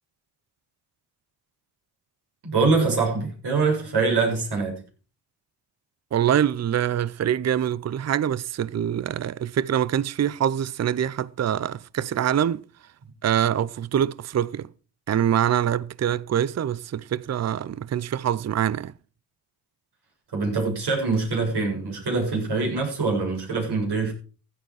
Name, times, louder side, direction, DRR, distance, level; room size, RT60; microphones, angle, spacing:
voice 1, 2.4-4.8 20.3-24.1, right 4 dB, 65° right, 7.4 m, -24 dB
voice 2, 6.1-12.6 13.2-14.7 15.1-18.9, right 9 dB, 40° right, 0.6 m, -24 dB
15.5 x 9.6 x 4.8 m
cardioid pair, 65°, 42 cm